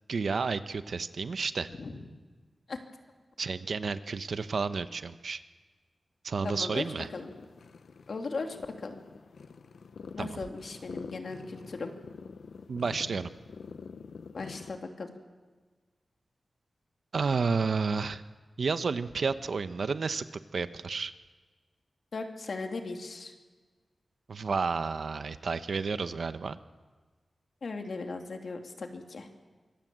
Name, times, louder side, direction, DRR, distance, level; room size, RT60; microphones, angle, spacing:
voice 1, 0.1-1.7 3.4-5.4 6.2-7.1 10.2-10.3 12.7-13.3 17.1-18.2 18.6-20.2 20.5-21.1 24.3-26.6, right 4 dB, 70° right, 11 dB, 1.0 m, -31 dB
voice 2, 1.7-2.1 2.7-2.8 6.4-6.9 7.1-7.3 8.1-8.9 10.1-11.9 14.3-15.1 22.1-23.3 27.6-29.3, left 3 dB, 65° left, 4 dB, 2.7 m, -37 dB
sound 1, 7.1-14.8, left 5 dB, 90° left, 1.0 m, -47 dB
25.5 x 21.0 x 7.6 m, 1.4 s
wide cardioid pair, 105°, 0 cm